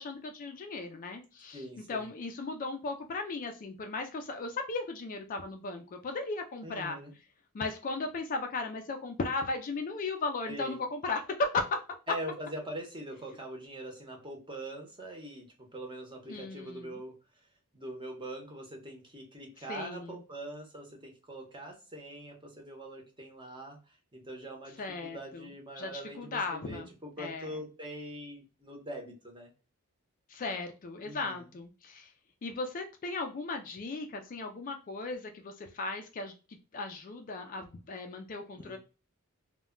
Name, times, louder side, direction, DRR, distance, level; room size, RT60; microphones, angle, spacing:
voice 1, 0.0-1.6 1.9-7.0 7.5-11.8 16.3-17.0 19.7-20.2 24.8-25.5 25.8-26.9 27.2-27.5 30.3-32.1 32.4-36.3 36.7-38.8, left 3 dB, 40° left, 5 dB, 0.4 m, -36 dB
voice 2, 1.5-2.1 6.6-7.1 10.5-10.8 12.1-15.5 15.7-17.1 17.7-29.5 31.0-31.4 38.6-38.8, right 1 dB, 20° right, 1 dB, 0.8 m, -43 dB
2.1 x 2.1 x 3.6 m, 0.33 s
head